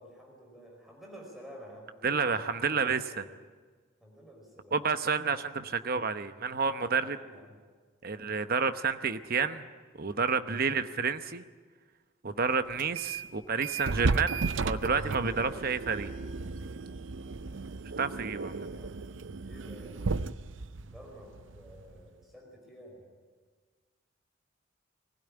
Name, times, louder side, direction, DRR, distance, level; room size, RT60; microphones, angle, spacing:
voice 1, 0.0-1.9 2.6-3.4 4.0-4.8 6.8-7.5 8.1-8.5 18.7-18.9 19.4-20.2 20.8-23.1, equal, ahead, -1 dB, 5.1 m, -51 dB
voice 2, 2.0-3.2 4.7-7.2 8.0-9.6 10.0-11.4 12.2-16.1 18.0-18.7, right 5 dB, 50° right, 10 dB, 0.9 m, -30 dB
sound 1, 12.8-13.3 13.6-22.1, right 4 dB, 70° right, 0.6 m, -34 dB
21.0 x 16.0 x 10.0 m, 1.5 s
head